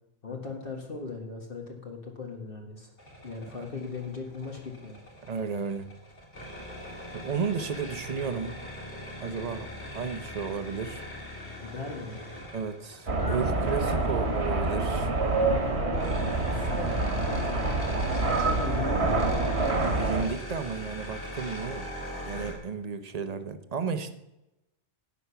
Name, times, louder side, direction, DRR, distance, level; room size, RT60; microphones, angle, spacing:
voice 1, 0.2-2.9 3.2-5.0 11.6-12.2 13.7-13.9 15.7-16.1 16.5-17.6 18.1-19.3, left 4 dB, 55° left, 1 dB, 1.8 m, -38 dB
sound 1, 3.0-22.5, left 1 dB, 85° left, 3.0 m, -41 dB
voice 2, 5.2-5.9 7.1-8.6 9.2-11.0 12.5-15.1 19.8-21.8 22.2-24.1, right 5 dB, 40° right, 10 dB, 0.9 m, -33 dB
sound 2, 13.1-20.2, right 2 dB, 70° right, 1.9 m, -27 dB
11.5 x 8.3 x 5.8 m, 0.92 s
omnidirectional pair, 1.1 m